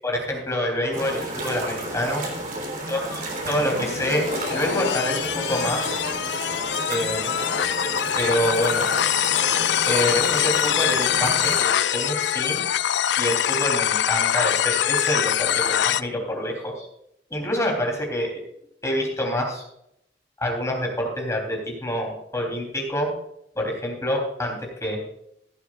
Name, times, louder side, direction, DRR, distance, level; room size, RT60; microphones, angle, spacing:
voice 1, 0.0-2.3 2.9-3.1 3.5-6.0 6.9-7.4 8.2-8.9 9.9-12.6 13.2-16.9 17.3-18.3 18.8-19.6 20.4-23.1 23.6-25.0, equal, 15° left, 0 dB, 3.4 m, -26 dB
sound 1, 0.9-11.6, right 1 dB, 45° right, 3.4 m, -32 dB
sound 2, 3.5-16.0, left 10 dB, 75° left, 0.4 m, -24 dB
16.0 x 12.0 x 2.5 m, 0.76 s
head